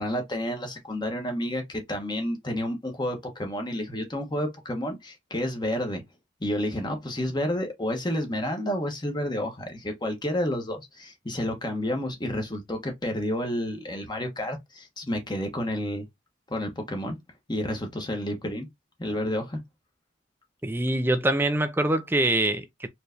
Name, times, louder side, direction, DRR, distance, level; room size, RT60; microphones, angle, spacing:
voice 1, 0.0-6.0 6.4-16.0 16.5-17.2 17.5-18.7 19.0-19.6, left 1 dB, 20° left, 1.1 m, -30 dB
voice 2, 20.6-22.9, right 1 dB, 10° right, 0.4 m, -24 dB
4.5 x 3.2 x 2.6 m
head